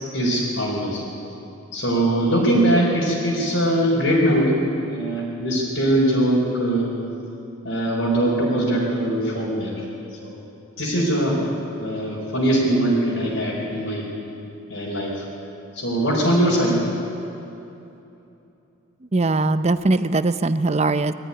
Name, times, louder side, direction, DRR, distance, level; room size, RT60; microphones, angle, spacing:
voice 1, 0.1-1.0 1.7-6.9 7.6-9.7 10.2-10.4 10.8-11.4 11.8-14.1 14.7-15.1 15.7-16.8, right 1 dB, 70° left, -7 dB, 4.6 m, -21 dB
voice 2, 19.1-21.1, right 2 dB, 30° right, 11 dB, 0.6 m, -20 dB
22.0 x 14.5 x 10.0 m, 2.9 s
head